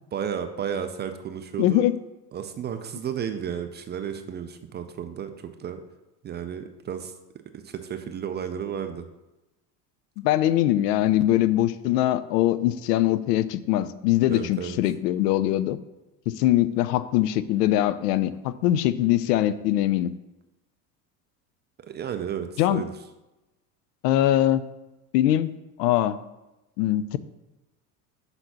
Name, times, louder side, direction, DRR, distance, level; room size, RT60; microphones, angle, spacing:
voice 1, 0.1-1.9 2.3-5.8 6.2-7.1 7.5-9.0 14.3-14.8 21.9-22.9, right 8 dB, 25° right, 8 dB, 0.4 m, -33 dB
voice 2, 1.6-1.9 10.2-15.8 16.3-20.1 22.6-22.8 24.0-24.6 25.1-25.5 25.8-26.2 26.8-27.2, left 13 dB, 75° left, 15 dB, 0.6 m, -22 dB
5.9 x 4.0 x 5.7 m, 1.0 s
hypercardioid pair, 90°, 48 cm